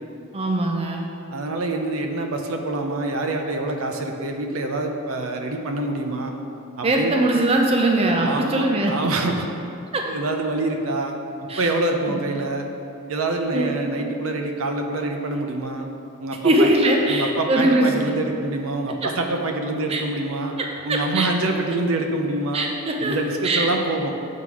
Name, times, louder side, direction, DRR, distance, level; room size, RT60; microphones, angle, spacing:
voice 1, 0.3-1.1 6.8-8.9 9.9-10.0 11.5-11.7 12.1-12.2 13.5-13.7 16.4-17.9 19.0-19.1 19.9-20.0 20.9-21.3 22.5-23.2 23.4-23.7, right 1 dB, 30° right, 1 dB, 0.5 m, -21 dB
voice 2, 1.3-6.3 6.8-7.1 8.2-9.5 10.1-11.1 11.6-12.7 13.1-15.9 16.2-16.7 17.1-20.5 20.8-22.7 23.0-24.1, right 2 dB, 75° right, 3 dB, 0.6 m, -26 dB
7.5 x 3.7 x 4.7 m, 2.7 s
head